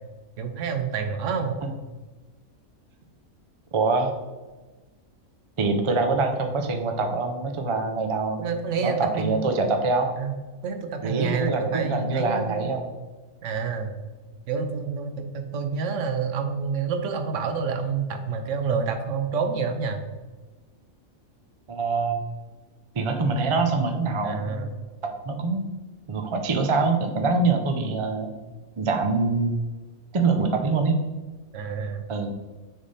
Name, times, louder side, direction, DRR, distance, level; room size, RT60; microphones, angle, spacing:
voice 1, 0.4-1.6 8.4-9.4 10.2-10.3 10.6-12.7 13.4-13.9 14.5-20.0 24.2-24.7 31.5-32.0, right 5 dB, 70° right, 6 dB, 1.0 m, -28 dB
voice 2, 3.7-4.1 5.6-10.1 11.0-12.9 21.7-22.2 22.9-24.7 25.3-25.6 26.1-28.3 28.8-29.5 30.1-31.0 32.1-32.3, right 3 dB, 45° right, 4 dB, 0.4 m, -24 dB
6.4 x 3.7 x 4.0 m, 1.2 s
omnidirectional pair, 1.4 m